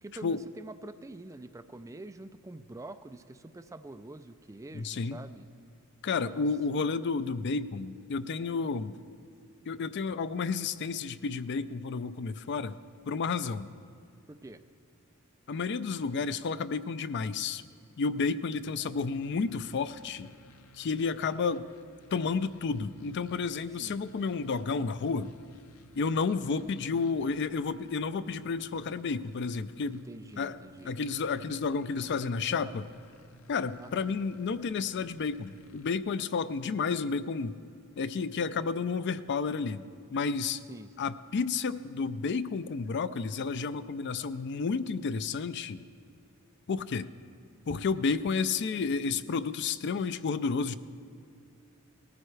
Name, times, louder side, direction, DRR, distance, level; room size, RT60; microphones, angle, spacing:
voice 1, 0.0-5.5 6.3-6.4 14.3-14.6 23.8-24.0 30.0-31.0 33.8-34.1 40.7-41.1, right 2 dB, 15° right, 9 dB, 0.4 m, -46 dB
voice 2, 4.7-5.2 6.0-9.0 9.7-12.8 13.1-13.7 15.5-17.6 18.0-20.3 20.8-21.7 22.1-25.3 26.0-30.1 30.4-30.6 30.8-32.9 33.5-37.6 38.0-39.8 40.1-40.6 41.0-45.8 46.7-47.1 47.7-50.8, left 4 dB, 55° left, 14 dB, 0.4 m, -31 dB
sound 1, 18.6-36.0, equal, 90° left, 0.8 m, -58 dB
18.5 x 14.5 x 3.3 m, 2.5 s
head